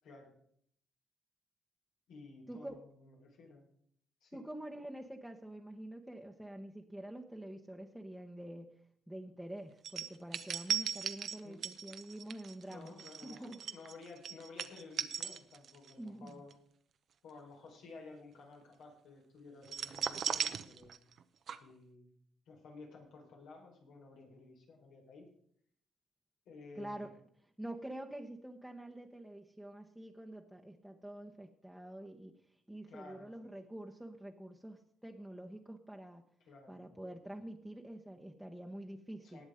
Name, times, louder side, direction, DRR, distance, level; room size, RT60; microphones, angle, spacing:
voice 1, 0.0-0.3 2.1-3.6 4.2-4.4 11.4-11.7 12.7-16.5 17.2-21.0 21.6-22.1 22.5-25.3 26.4-27.1 32.9-33.3 36.5-36.9 39.2-39.4, left 3 dB, 80° left, 0 dB, 4.6 m, -54 dB
voice 2, 2.5-2.8 4.3-8.7 9.1-12.9 13.2-13.6 16.0-16.4 26.7-27.1 27.6-32.4 32.7-36.2 36.7-39.4, right 1 dB, 5° right, 1 dB, 1.2 m, -47 dB
Dog scratching and shaking, 9.8-15.9 16.3-16.5 19.7-21.2 21.5-21.6, right 8 dB, 60° right, 0.8 m, -38 dB
19.0 x 7.2 x 5.0 m, 0.65 s
cardioid pair, 90°, 0 cm